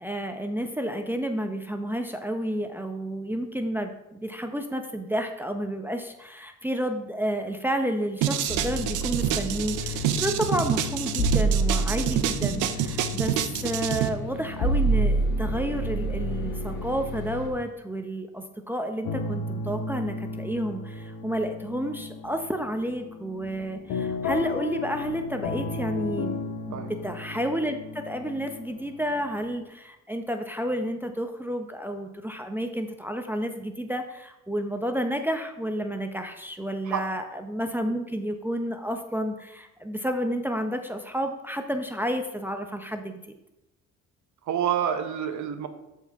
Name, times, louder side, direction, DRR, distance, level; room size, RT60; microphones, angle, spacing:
voice 1, 0.0-13.4 13.6-26.4 26.7-43.3, equal, 5° right, 5 dB, 0.7 m, -30 dB
sound 1, 8.2-14.1, right 10 dB, 85° right, 0.7 m, -27 dB
sound 2, 8.5-17.5, right 2 dB, 90° left, 1.7 m, -28 dB
sound 3, 19.0-29.6, left 3 dB, 70° left, 0.9 m, -34 dB
voice 2, 44.5-45.7, right 9 dB, 70° right, 7 dB, 1.0 m, -27 dB
12.5 x 4.7 x 3.5 m, 0.92 s
cardioid pair, 90°, 30 cm